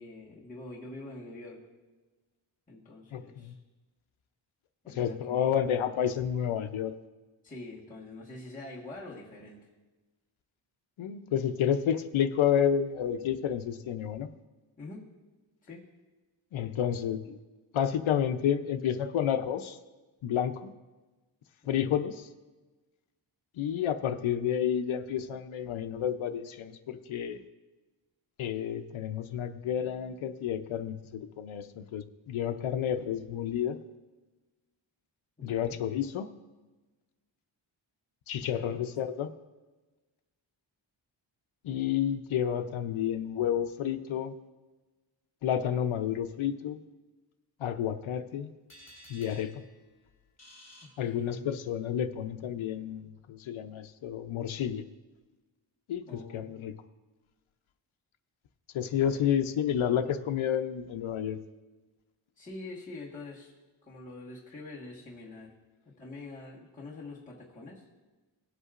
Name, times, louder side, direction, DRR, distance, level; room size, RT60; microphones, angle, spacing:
voice 1, 0.0-1.6 2.7-3.5 4.8-5.5 7.4-9.6 14.8-15.0 15.6-15.8 21.7-21.9 35.5-35.8 38.5-38.8 51.0-51.5 56.0-56.5 62.4-63.5 63.8-65.5 65.8-67.9, left 2 dB, 15° left, -6 dB, 1.4 m, -45 dB
voice 2, 3.1-3.6 4.9-6.9 11.0-14.3 16.5-17.4 17.7-19.8 20.2-20.7 21.7-22.3 23.6-27.4 28.4-33.8 35.4-36.3 38.3-39.3 41.6-44.3 45.4-46.8 47.6-48.5 49.1-49.6 51.0-54.8 55.9-56.7 58.7-61.4, left 9 dB, 85° left, 7 dB, 0.7 m, -30 dB
sound 1, 48.7-51.7, equal, 35° left, 3.0 m, -55 dB
18.0 x 8.1 x 2.5 m, 1.2 s
wide cardioid pair, 175°, 47 cm